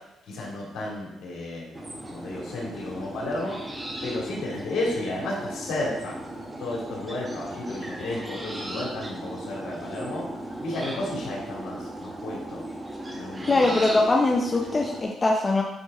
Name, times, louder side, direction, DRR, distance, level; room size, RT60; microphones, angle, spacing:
voice 1, 0.3-1.8 2.1-3.6 4.0-6.2 6.6-10.3 10.6-12.6 13.1-13.7, left 2 dB, 75° left, -4 dB, 2.6 m, -32 dB
sound 1, 1.7-15.0, right 1 dB, 20° right, 1.5 m, -37 dB
voice 2, 13.5-15.6, left 2 dB, 30° left, 0 dB, 0.8 m, -22 dB
8.9 x 3.6 x 4.2 m, 0.88 s
cardioid pair, 90°, 0 cm